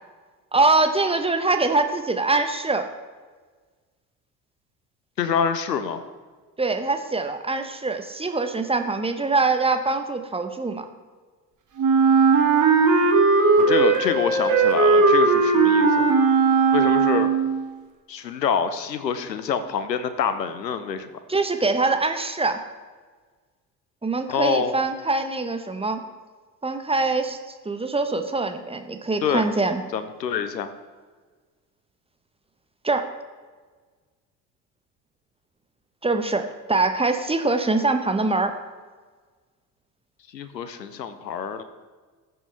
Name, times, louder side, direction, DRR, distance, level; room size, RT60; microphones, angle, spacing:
voice 1, 0.5-2.9 6.6-10.8 21.3-22.6 24.0-26.0 26.6-27.4 27.6-29.8 32.8-33.1 36.0-38.5, right 3 dB, 10° right, 7 dB, 1.0 m, -23 dB
voice 2, 5.2-6.0 13.7-16.1 16.7-17.3 18.1-21.1 24.3-24.8 29.2-29.5 29.9-30.7 40.3-41.6, left 7 dB, 80° left, 11 dB, 0.9 m, -26 dB
Wind instrument woodwind instrument, 11.8-17.6, right 4 dB, 35° right, 2.1 m, -18 dB
19.0 x 7.7 x 3.4 m, 1.5 s
figure-of-eight pair, 60°, 49 cm